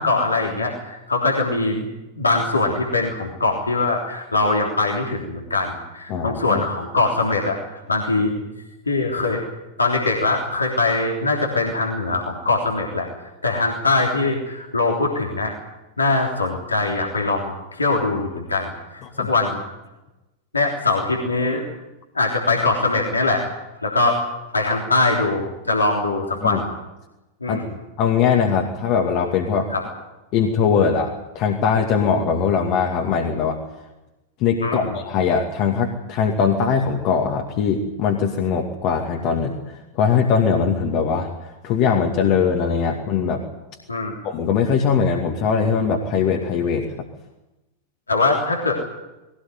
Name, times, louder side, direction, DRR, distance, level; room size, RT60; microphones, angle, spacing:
voice 1, 0.0-1.8 2.2-7.6 7.9-8.3 8.9-9.4 9.8-13.1 13.4-15.5 16.0-19.6 20.5-21.6 22.1-23.4 23.8-24.2 24.5-26.7 27.4-27.7 29.7-29.8 34.6-34.9 43.9-44.1 48.1-48.7, left 3 dB, 80° left, -1 dB, 3.4 m, -22 dB
voice 2, 6.1-6.6 19.0-19.3 26.4-26.6 27.5-27.6 28.0-29.7 30.3-33.6 34.4-43.4 44.2-46.9, left 6 dB, 40° left, 2 dB, 2.4 m, -21 dB
20.5 x 18.0 x 9.4 m, 1.0 s
figure-of-eight pair, 90°, 0 cm